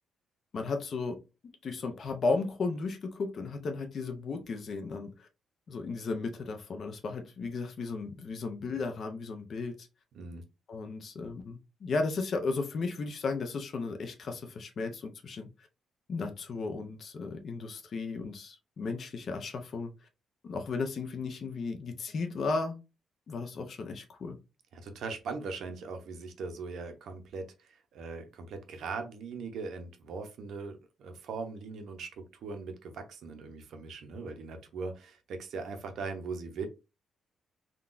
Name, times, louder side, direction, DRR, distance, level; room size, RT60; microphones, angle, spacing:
voice 1, 0.5-1.2 1.6-5.3 5.7-9.9 10.7-15.5 16.1-19.9 20.4-22.7 23.3-24.4, left 3 dB, 40° left, 0.5 m, -35 dB
voice 2, 24.7-36.6, right 4 dB, 60° right, 0.6 m, -40 dB
3.7 x 2.3 x 2.5 m
cardioid pair, 165°, 0 cm